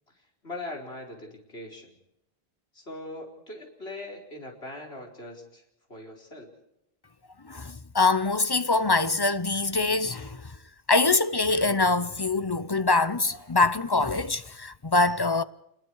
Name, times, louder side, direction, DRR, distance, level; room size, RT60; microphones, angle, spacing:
voice 1, 0.1-2.0 2.7-5.6 5.9-6.5, left 2 dB, 80° left, 4.9 m, -41 dB
voice 2, 7.5-10.5 10.9-15.4, left 3 dB, 25° left, 0.7 m, -24 dB
27.0 x 21.5 x 4.7 m
omnidirectional pair, 1.1 m